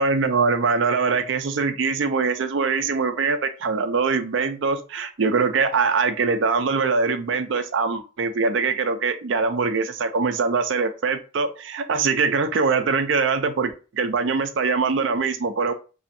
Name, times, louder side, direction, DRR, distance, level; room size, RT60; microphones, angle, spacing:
voice 1, 0.0-15.7, right 4 dB, 80° right, 8 dB, 0.4 m, -23 dB
2.7 x 2.5 x 2.6 m, 0.34 s
head